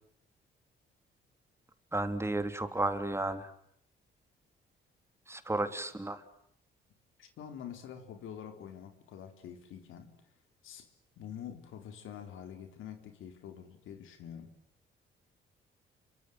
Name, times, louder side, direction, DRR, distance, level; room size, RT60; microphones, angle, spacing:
voice 1, 1.9-3.5 5.3-6.2, right 2 dB, 15° right, 9 dB, 3.1 m, -33 dB
voice 2, 7.2-10.2 10.6-10.9 11.2-14.5, left 8 dB, 85° left, 7 dB, 3.9 m, -46 dB
30.0 x 24.0 x 7.9 m, 0.68 s
cardioid pair, 90°, 20 cm